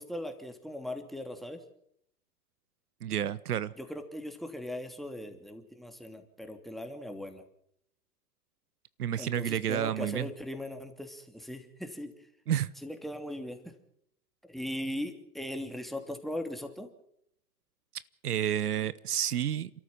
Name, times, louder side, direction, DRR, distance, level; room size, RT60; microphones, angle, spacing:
voice 1, 0.0-1.6 3.8-7.4 9.2-12.1 12.8-13.7 14.4-16.9, left 1 dB, ahead, 5 dB, 2.8 m, -39 dB
voice 2, 3.0-3.7 9.0-10.3 12.5-12.7 18.2-19.7, right 10 dB, 75° right, 18 dB, 0.9 m, -30 dB
28.5 x 13.5 x 7.5 m, 0.72 s
figure-of-eight pair, 95°, 46 cm